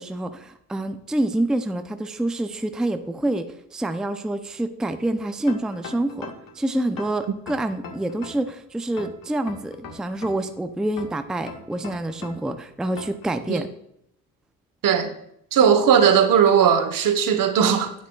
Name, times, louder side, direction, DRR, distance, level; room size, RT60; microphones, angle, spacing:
voice 1, 0.0-13.7, right 1 dB, ahead, 0.5 m, -27 dB
sound 1, 5.5-6.5 7.0-8.5 9.0-10.5 11.0-12.5 13.0-13.3, left 5 dB, 60° left, 1.6 m, -39 dB
voice 2, 15.5-17.9, right 7 dB, 60° right, 1.1 m, -18 dB
10.0 x 7.3 x 2.3 m
supercardioid pair, 80°, 38 cm